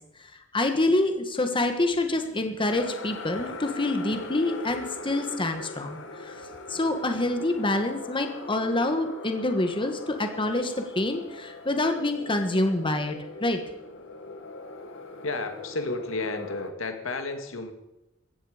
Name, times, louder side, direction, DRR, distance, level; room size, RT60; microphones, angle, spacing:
voice 1, 0.5-6.3 6.7-13.6, left 2 dB, 25° left, 6 dB, 1.4 m, -26 dB
sound 1, 2.7-16.7, left 3 dB, 65° left, 1.6 m, -41 dB
voice 2, 15.2-17.7, left 3 dB, 85° left, 6 dB, 2.0 m, -32 dB
16.5 x 14.5 x 5.0 m, 0.96 s
head